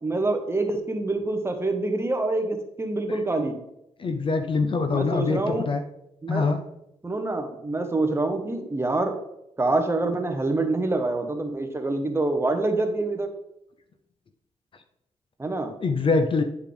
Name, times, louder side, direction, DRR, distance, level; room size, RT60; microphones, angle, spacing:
voice 1, 0.0-3.6 4.9-5.7 6.2-6.5 7.0-9.1 9.6-13.3 15.4-15.7, right 2 dB, 20° right, 5 dB, 1.1 m, -26 dB
voice 2, 4.0-5.8 6.3-6.6 15.8-16.4, left 4 dB, 45° left, 8 dB, 0.6 m, -24 dB
9.3 x 4.7 x 3.4 m, 0.82 s
cardioid pair, 75°, 12 cm